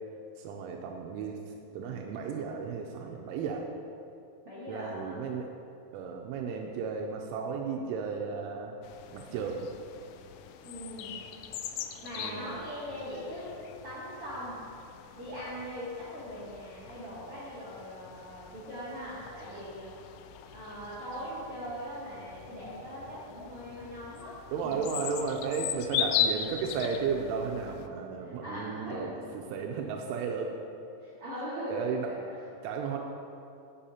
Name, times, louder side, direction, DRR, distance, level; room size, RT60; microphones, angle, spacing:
voice 1, 0.4-1.4 1.7-3.7 4.7-5.5 5.9-8.7 9.1-9.7 12.2-12.5 24.5-30.5 31.7-32.1 32.6-33.0, right 5 dB, 85° right, 1 dB, 3.1 m, -34 dB
voice 2, 4.4-5.2 10.6-11.2 12.0-13.5 13.8-14.6 15.2-19.9 20.5-24.3 24.6-24.8 28.2-29.1 31.0-32.4, equal, 50° right, -10 dB, 1.7 m, -40 dB
sound 1, 8.8-27.9, left 9 dB, 85° left, 3.0 m, -39 dB
10.0 x 9.8 x 2.9 m, 2.7 s
omnidirectional pair, 5.5 m